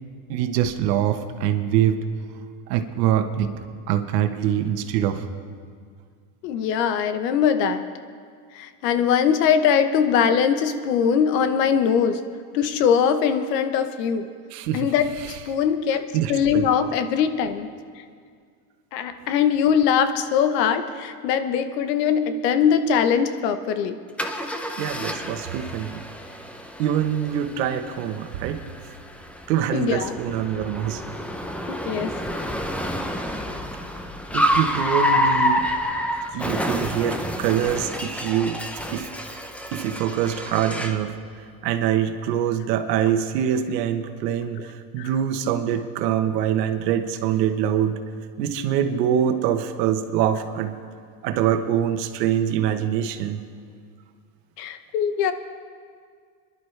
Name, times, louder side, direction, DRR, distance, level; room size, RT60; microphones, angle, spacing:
voice 1, 0.3-2.0 2.7-3.5 3.9-5.3 14.5-14.9 15.2-15.4 16.1-16.7 24.8-26.0 26.8-28.6 29.5-31.0 34.3-35.7 36.3-38.6 38.9-39.1 39.7-41.1 41.6-48.0 48.4-50.7 51.2-53.4, right 10 dB, 85° right, 8 dB, 1.2 m, -24 dB
voice 2, 6.4-7.8 8.5-12.2 12.5-14.3 14.7-17.7 18.9-24.0 29.7-30.2 31.7-32.1 44.6-44.7 45.0-45.1 54.6-55.3, left 7 dB, 90° left, 10 dB, 1.1 m, -21 dB
Car, 24.2-41.1, equal, 5° left, 0.5 m, -28 dB
25.5 x 11.0 x 3.3 m, 2.1 s
supercardioid pair, 135°, 47 cm